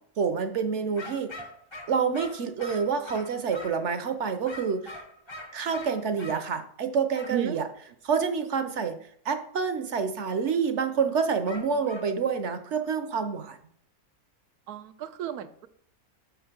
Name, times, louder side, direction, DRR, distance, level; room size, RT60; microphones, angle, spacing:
voice 1, 0.2-1.3 1.9-5.0 5.5-7.7 8.0-9.0 9.2-13.6, right 6 dB, 60° right, 9 dB, 0.9 m, -28 dB
sound 1, 1.0-3.9 4.5-6.4 7.1-7.4 11.5-12.1, left 1 dB, 25° left, 0.6 m, -42 dB
voice 2, 7.3-7.7 14.7-15.7, right 10 dB, 85° right, 10 dB, 1.1 m, -33 dB
6.3 x 4.5 x 6.6 m, 0.62 s
omnidirectional pair, 1.6 m